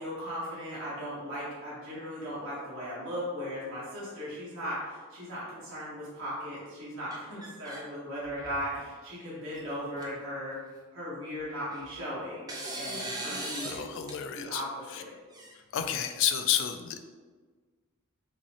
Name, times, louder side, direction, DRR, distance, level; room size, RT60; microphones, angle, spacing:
voice 1, 0.0-10.6 10.9-12.5 12.7-13.8 14.3-15.1, equal, 65° right, -8 dB, 1.2 m, -37 dB
sound 1, 7.1-7.8 8.2-8.7 9.5-9.6 10.0-10.1 11.4-12.0 12.5-13.8 14.1-14.2 15.3-16.1, right 1 dB, 20° right, 0.4 m, -39 dB
voice 2, 13.6-14.6 14.9-15.0 15.7-17.0, left 9 dB, 60° left, 8 dB, 0.3 m, -30 dB
5.1 x 2.0 x 2.8 m, 1.4 s
head